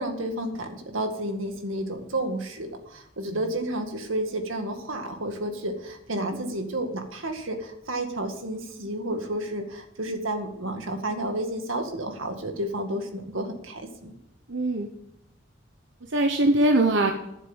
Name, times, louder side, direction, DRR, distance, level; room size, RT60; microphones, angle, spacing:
voice 1, 0.0-14.1, right 1 dB, 85° right, 5 dB, 2.0 m, -31 dB
voice 2, 6.1-6.5 14.5-14.9 16.0-17.1, right 2 dB, 70° right, 4 dB, 1.1 m, -22 dB
11.0 x 7.7 x 7.2 m, 0.81 s
head